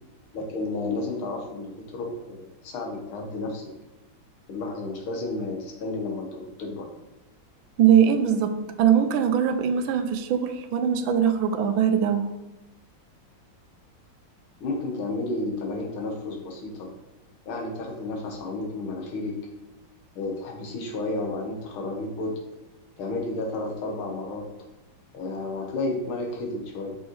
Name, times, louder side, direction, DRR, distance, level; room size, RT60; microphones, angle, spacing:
voice 1, 0.3-3.6 4.5-6.9 14.6-16.9 17.5-19.4 20.2-22.4 23.0-24.5 25.1-27.0, left 2 dB, 90° left, 1 dB, 1.9 m, -32 dB
voice 2, 7.8-12.3, right 8 dB, 80° right, 8 dB, 1.4 m, -21 dB
6.2 x 5.4 x 3.1 m, 0.98 s
omnidirectional pair, 2.2 m